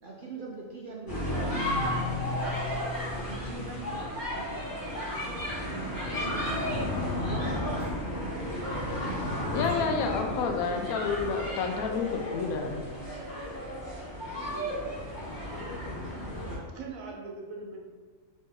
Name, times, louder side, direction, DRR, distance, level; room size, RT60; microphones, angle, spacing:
voice 1, 0.0-2.5 3.3-4.5 5.3-9.4, right 3 dB, 60° right, -3 dB, 0.5 m, -42 dB
sound 1, 1.1-16.6, left 1 dB, 15° left, 1.2 m, -33 dB
sound 2, 1.5-4.1, left 5 dB, 25° right, 1.4 m, -38 dB
sound 3, 7.2-8.6 9.1-10.4 10.8-10.9, equal, 65° left, 1.6 m, -50 dB
voice 2, 9.5-12.8, left 5 dB, 85° left, 3 dB, 1.1 m, -30 dB
voice 3, 16.4-17.9, right 3 dB, 75° right, 0 dB, 1.1 m, -41 dB
4.2 x 3.1 x 3.6 m, 1.6 s
omnidirectional pair, 1.5 m